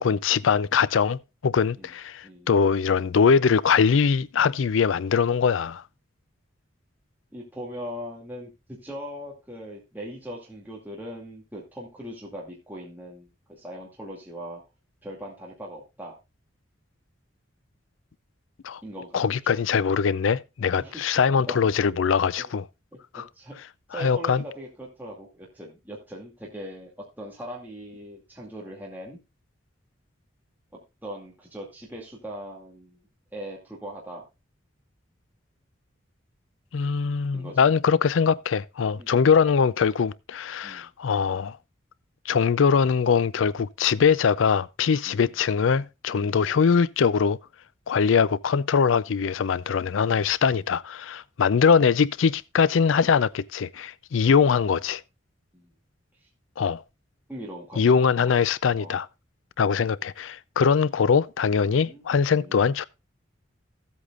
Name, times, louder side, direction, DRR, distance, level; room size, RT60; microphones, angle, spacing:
voice 1, 0.0-5.8 18.6-18.8 19.1-22.6 23.1-23.2 24.0-24.4 36.7-41.6 42.3-47.4 47.9-55.0 56.6-56.8 57.8-59.1 59.6-62.9, left 6 dB, 85° left, 0.4 m, -22 dB
voice 2, 7.3-14.6 15.0-16.2 18.8-19.6 20.8-21.6 22.4-22.5 23.1-23.6 23.9-29.2 31.0-33.0 33.3-34.3 37.3-37.7 39.0-39.1 40.6-40.9 45.0-45.3 46.2-46.4 47.9-48.0 55.5-55.7 56.2-56.3 57.3-58.4 58.8-59.0 61.7-62.0 62.3-62.7, equal, 10° right, 2.4 m, -40 dB
15.0 x 8.3 x 2.4 m
head